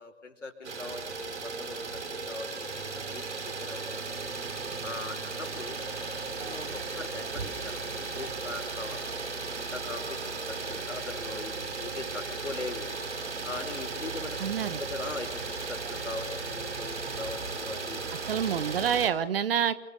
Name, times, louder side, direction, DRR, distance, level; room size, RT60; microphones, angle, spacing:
voice 1, 0.0-4.2 4.8-5.8 6.4-9.1 9.5-12.9 13.4-18.2, left 3 dB, 80° left, 6 dB, 5.0 m, -41 dB
Idling, 0.6-19.1, right 4 dB, 70° right, 4.7 m, -36 dB
voice 2, 14.4-14.8 18.3-19.7, right 8 dB, 50° right, 13 dB, 1.6 m, -27 dB
28.0 x 23.5 x 6.8 m, 0.85 s
figure-of-eight pair, 125°, 36 cm